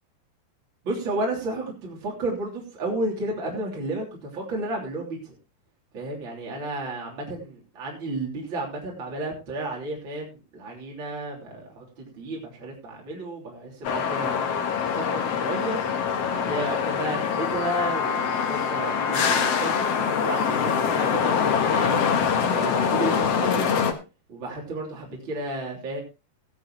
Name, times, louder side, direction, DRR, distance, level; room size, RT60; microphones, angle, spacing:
voice 1, 0.8-5.3 5.9-14.5 14.8-15.8 16.3-21.9 22.5-23.8 24.3-26.0, right 2 dB, 30° right, -2 dB, 3.6 m, -32 dB
sound 1, 13.8-23.9, left 7 dB, 85° left, 1.3 m, -24 dB
16.5 x 11.5 x 3.0 m, 0.29 s
omnidirectional pair, 5.0 m